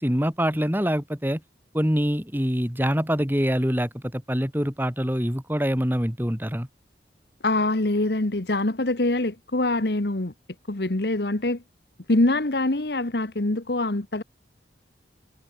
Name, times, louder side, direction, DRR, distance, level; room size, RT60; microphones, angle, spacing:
voice 1, 0.0-1.4 1.7-6.7, equal, 10° right, 2.7 m, -25 dB
voice 2, 7.4-10.3 10.7-11.6 12.1-14.2, left 2 dB, 60° left, 1.4 m, -24 dB
head